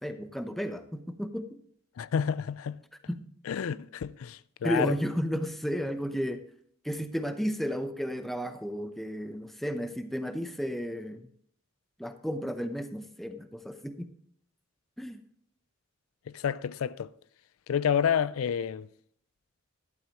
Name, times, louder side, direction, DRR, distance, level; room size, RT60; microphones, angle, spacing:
voice 1, 0.0-1.6 3.1-3.2 4.6-6.4 6.8-11.2 12.0-14.1 15.0-15.2, equal, ahead, 0.7 m, -33 dB
voice 2, 2.0-2.8 3.5-4.9 16.3-17.1 17.7-18.9, left 7 dB, 85° left, 0.4 m, -29 dB
12.0 x 11.0 x 3.0 m
head